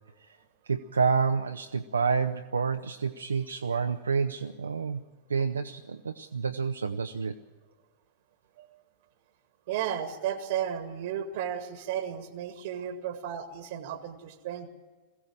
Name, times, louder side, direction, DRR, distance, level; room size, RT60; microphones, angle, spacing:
voice 1, 0.7-5.0 5.3-7.4, right 5 dB, 75° right, 7 dB, 0.6 m, -28 dB
voice 2, 9.7-14.7, right 9 dB, 55° right, 10 dB, 1.4 m, -34 dB
21.5 x 16.0 x 8.9 m, 1.4 s
figure-of-eight pair, 90°, 0 cm